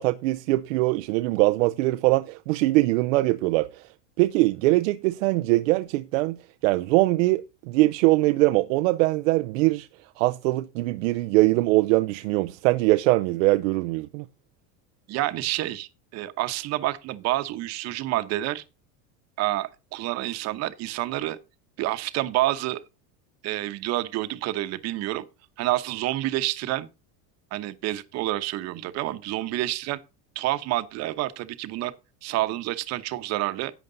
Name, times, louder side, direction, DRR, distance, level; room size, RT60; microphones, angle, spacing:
voice 1, 0.0-3.9 4.2-6.4 6.6-9.9 10.2-14.2, right 20 dB, 85° right, 0.6 m, -22 dB
voice 2, 15.1-18.6 19.4-21.4 21.8-22.8 23.4-25.2 25.6-26.9 27.5-30.0 30.3-31.9 32.2-33.7, right 16 dB, 45° right, 1.0 m, -28 dB
11.0 x 8.1 x 3.9 m
cardioid pair, 155°, 38 cm